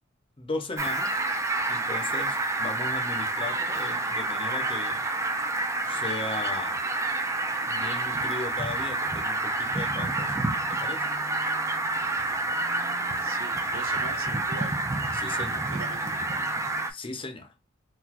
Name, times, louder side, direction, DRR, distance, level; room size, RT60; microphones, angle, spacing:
voice 1, 0.4-1.2 1.7-5.0 5.9-6.8 7.6-10.3 10.7-11.1 15.1-15.7 16.9-17.5, left 3 dB, 25° left, 0.6 m, -36 dB
Fowl, 0.8-16.9, right 2 dB, 15° right, 0.4 m, -28 dB
voice 2, 13.2-14.8 15.5-16.5, right 3 dB, 85° right, 0.7 m, -42 dB
3.9 x 2.4 x 2.9 m
head